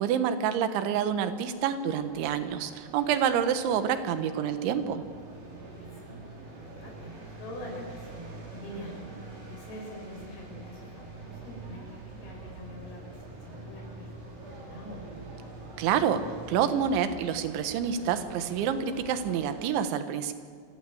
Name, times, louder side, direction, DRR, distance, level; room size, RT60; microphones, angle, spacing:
voice 1, 0.0-5.0 15.8-16.2 16.5-20.3, right 8 dB, 80° right, 9 dB, 3.7 m, -27 dB
sound 1, 1.3-16.6, right 2 dB, ahead, 2.5 m, -51 dB
sound 2, 1.9-19.7, right 3 dB, 50° right, 6.1 m, -46 dB
voice 2, 5.8-6.2 6.5-9.1 9.4-15.2, left 1 dB, 55° left, -1 dB, 8.9 m, -45 dB
28.0 x 23.0 x 7.9 m, 2.1 s
omnidirectional pair, 5.3 m